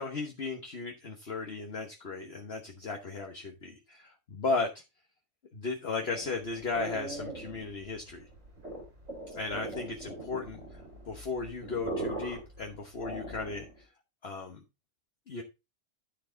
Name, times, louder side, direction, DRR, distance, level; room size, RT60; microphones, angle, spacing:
voice 1, 0.0-4.7 5.5-8.3 9.3-10.6 11.1-13.7 14.2-14.6 15.3-15.4, left 3 dB, 50° left, 2 dB, 1.4 m, -35 dB
sound 1, 5.9-13.8, right 2 dB, 75° right, 3.9 m, -41 dB
13.0 x 4.7 x 3.8 m, 0.26 s
omnidirectional pair, 1.4 m